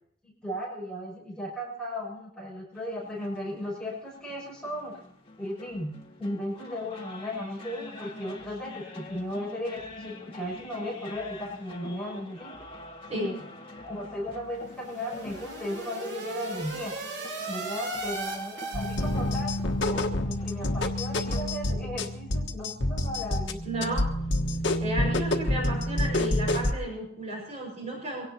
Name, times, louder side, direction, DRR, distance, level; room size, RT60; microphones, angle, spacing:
voice 1, 0.2-4.9 5.4-5.9 6.2-12.5 13.1-13.5 13.8-16.9 17.5-24.0, left 1 dB, 5° left, -5 dB, 6.6 m, -36 dB
sound 1, 2.8-21.6, left 1 dB, 30° left, 2.0 m, -46 dB
sound 2, 14.6-19.6, right 2 dB, 60° right, 3.0 m, -37 dB
sound 3, 18.7-26.7, left 1 dB, 80° left, 1.4 m, -28 dB
voice 2, 23.6-24.1 24.8-28.2, right 1 dB, 35° right, -1 dB, 5.4 m, -33 dB
24.0 x 17.5 x 2.9 m, 0.70 s
head